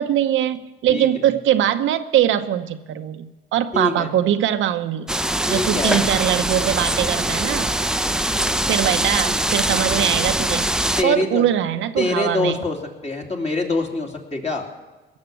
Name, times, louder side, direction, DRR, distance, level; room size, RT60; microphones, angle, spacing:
voice 1, 0.0-5.1 5.5-7.8 8.7-10.7 11.0-12.6, right 11 dB, 80° right, 8 dB, 0.9 m, -21 dB
voice 2, 3.7-4.1 5.5-6.1 11.0-11.4 12.0-12.8 13.0-14.6, left 3 dB, 30° left, 2 dB, 2.8 m, -24 dB
sound 1, 5.1-11.0, right 1 dB, 5° right, 0.6 m, -22 dB
19.0 x 7.3 x 9.3 m, 1.2 s
cardioid pair, 90°, 20 cm